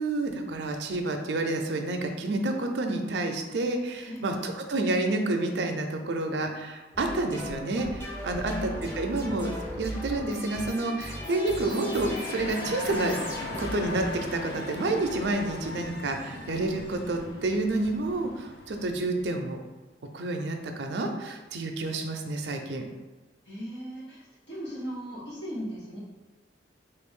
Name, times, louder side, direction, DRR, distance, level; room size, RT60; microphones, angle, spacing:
voice 1, 0.0-13.2 13.6-19.6 20.1-22.8, right 2 dB, 75° right, 4 dB, 0.5 m, -29 dB
voice 2, 4.1-4.4 8.3-9.4 23.5-26.0, equal, 85° left, -7 dB, 1.4 m, -38 dB
sound 1, 6.9-14.7, equal, 15° left, 0.6 m, -38 dB
sound 2, 10.8-19.5, left 2 dB, 65° left, 0.5 m, -39 dB
3.3 x 2.5 x 3.6 m, 1.2 s
head